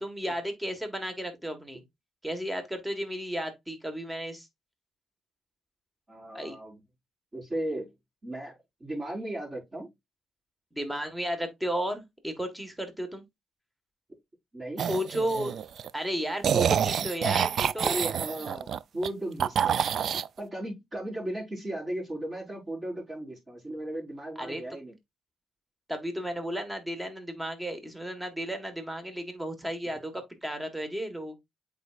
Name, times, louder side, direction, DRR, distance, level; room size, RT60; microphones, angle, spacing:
voice 1, 0.0-1.8 2.2-4.5 6.3-6.6 10.7-13.2 14.9-15.5 15.9-18.0 24.4-24.6 25.9-31.4, equal, 10° right, 1.6 m, -33 dB
voice 2, 6.1-6.8 7.3-7.9 8.2-9.9 14.5-14.9 17.8-25.0, right 1 dB, 30° right, 5.2 m, -36 dB
sound 1, 14.8-15.9 16.4-19.1 19.4-20.3, right 8 dB, 60° right, 0.3 m, -27 dB
8.1 x 4.7 x 2.5 m
cardioid pair, 90°, 0 cm